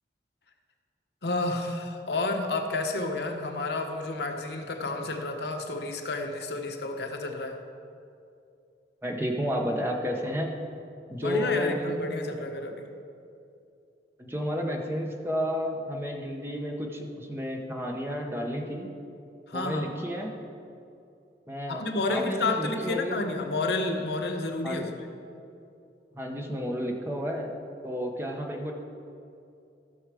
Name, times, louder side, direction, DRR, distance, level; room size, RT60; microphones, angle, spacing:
voice 1, 1.2-7.6 11.2-12.9 19.5-19.9 21.7-24.9, left 2 dB, 75° left, 4 dB, 0.9 m, -30 dB
voice 2, 9.0-10.6 11.1-11.8 14.2-18.9 19.5-20.3 21.5-23.2 24.6-24.9 26.1-27.5 27.8-28.7, equal, 15° right, 1 dB, 0.9 m, -31 dB
15.0 x 6.2 x 4.9 m, 2.6 s
head